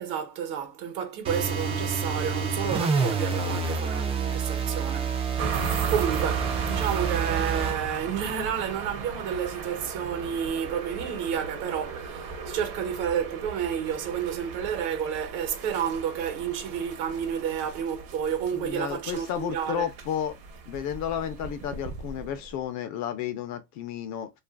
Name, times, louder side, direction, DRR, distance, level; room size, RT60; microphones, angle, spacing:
voice 1, 0.0-19.9, right 8 dB, 70° right, 1.0 m, -31 dB
sound 1, 1.2-7.8, right 5 dB, 15° right, 0.3 m, -28 dB
sound 2, 5.4-22.6, right 5 dB, 40° right, 0.7 m, -37 dB
voice 2, 18.5-20.4 20.7-24.3, left 10 dB, 50° left, 0.6 m, -32 dB
2.4 x 2.4 x 2.3 m
cardioid pair, 150°, 36 cm